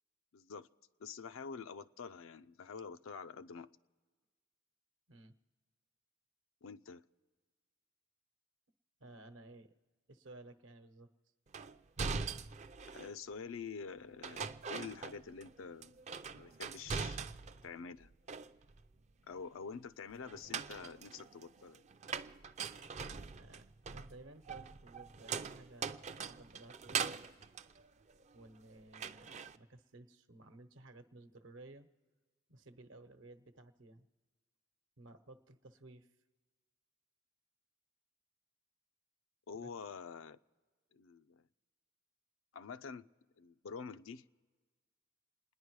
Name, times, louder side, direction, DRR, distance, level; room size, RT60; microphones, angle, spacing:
voice 1, 0.3-0.7 1.0-3.7 6.6-7.0 12.9-16.0 16.3-17.2 17.6-18.1 19.3-21.8 39.5-40.4 40.9-41.4 42.5-43.1 43.4-44.2, left 5 dB, 85° left, 12 dB, 0.5 m, -47 dB
voice 2, 9.0-9.7 10.1-11.1 23.3-23.6 23.9-27.4 28.3-31.9 32.5-34.1 35.0-36.1 39.6-39.7, right 2 dB, 75° right, 9 dB, 1.0 m, -56 dB
sound 1, 11.5-13.2 14.2-15.5 15.8-17.7 18.0-18.9 20.2-28.6 28.9-29.6, right 5 dB, 35° right, 0.4 m, -42 dB
28.5 x 10.5 x 4.7 m, 1.4 s
head